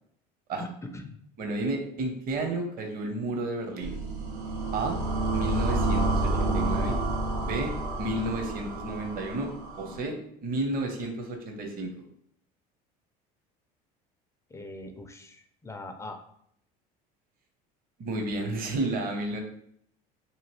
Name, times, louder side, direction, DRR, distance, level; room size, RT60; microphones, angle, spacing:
voice 1, 0.6-1.2 14.5-16.2, left 2 dB, 15° left, 6 dB, 0.4 m, -41 dB
voice 2, 1.4-4.0 4.7-5.0 5.3-7.0 7.4-7.7 8.0-9.5 9.8-10.2 10.4-11.9 18.0-19.4, right 2 dB, 50° right, 4 dB, 0.7 m, -31 dB
sound 1, 3.8-10.0, right 2 dB, 85° right, 0.6 m, -29 dB
2.9 x 2.6 x 3.0 m, 0.69 s
supercardioid pair, 95°, 19 cm